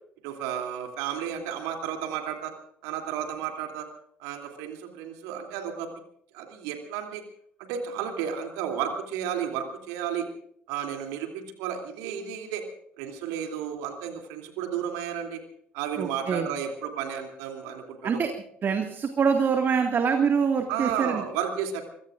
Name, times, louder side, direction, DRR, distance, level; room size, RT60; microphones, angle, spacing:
voice 1, 0.2-2.5 2.8-3.9 4.2-5.9 6.3-7.2 7.6-10.3 10.7-12.6 13.0-15.4 15.7-18.2 20.7-21.8, right 8 dB, 65° right, 4 dB, 2.9 m, -32 dB
voice 2, 16.0-16.5 18.0-18.3 18.6-21.2, right 6 dB, 35° right, 5 dB, 1.9 m, -24 dB
24.5 x 22.5 x 2.5 m, 0.68 s
figure-of-eight pair, 55°, 6 cm